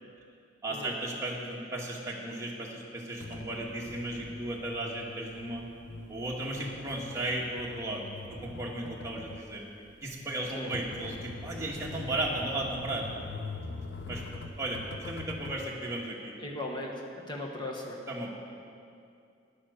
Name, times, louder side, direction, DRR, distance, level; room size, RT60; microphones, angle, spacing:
voice 1, 0.6-5.7 6.1-8.0 8.3-9.6 10.0-13.1 14.1-14.8 15.1-16.3 18.1-18.3, right 1 dB, 15° right, -3 dB, 1.4 m, -35 dB
sound 1, 3.2-15.6, left 3 dB, 65° left, 0.7 m, -43 dB
voice 2, 16.4-16.9 17.3-18.0, left 1 dB, 25° left, -1 dB, 1.3 m, -37 dB
10.0 x 8.6 x 6.5 m, 2.4 s
head